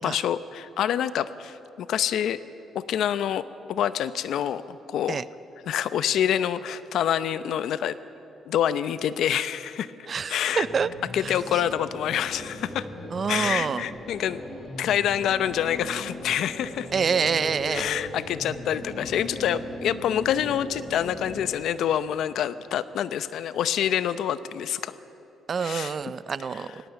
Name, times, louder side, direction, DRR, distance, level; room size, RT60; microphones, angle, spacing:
voice 1, 0.0-2.4 2.7-3.4 3.7-5.2 5.7-8.0 8.5-9.9 10.3-10.6 11.1-12.9 13.3-14.4 14.8-16.9 17.7-25.0 25.6-25.9, left 10 dB, 75° left, 14 dB, 0.7 m, -26 dB
voice 2, 10.1-10.9 11.2-11.4 13.1-13.9 16.9-17.9 25.5-26.8, right 6 dB, 45° right, 16 dB, 0.6 m, -27 dB
sound 1, 10.5-21.5, left 1 dB, 30° left, 6.7 m, -38 dB
18.5 x 18.0 x 8.1 m, 3.0 s
cardioid pair, 90°, 0 cm